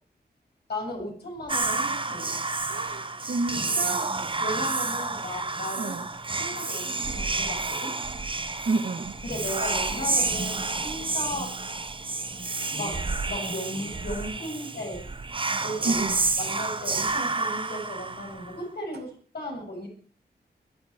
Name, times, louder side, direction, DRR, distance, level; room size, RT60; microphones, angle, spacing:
voice 1, 0.7-2.4 4.4-5.9 6.3-7.9 9.2-11.6 12.7-15.0 15.6-16.0 16.4-19.9, left 1 dB, 70° left, 0 dB, 7.7 m, -36 dB
Whispering, 1.5-18.6, right 3 dB, 30° right, 1.1 m, -30 dB
voice 2, 2.7-4.1 5.7-6.1 8.7-9.2 15.8-16.2, right 3 dB, 70° right, 5 dB, 2.1 m, -29 dB
21.5 x 12.0 x 4.8 m, 0.42 s
wide cardioid pair, 105°, 17 cm